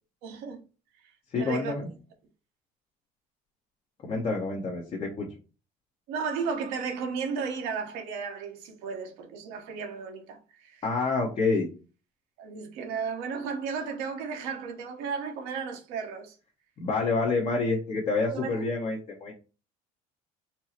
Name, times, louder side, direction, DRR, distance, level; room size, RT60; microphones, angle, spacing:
voice 1, 0.2-0.6 1.4-1.8 6.1-10.8 12.4-16.3 18.3-18.6, right 5 dB, 90° right, 1.0 m, -34 dB
voice 2, 1.3-1.9 4.0-5.3 10.8-11.7 16.8-19.3, left 3 dB, 35° left, 1.0 m, -28 dB
4.4 x 2.0 x 4.2 m
cardioid pair, 145°, 16 cm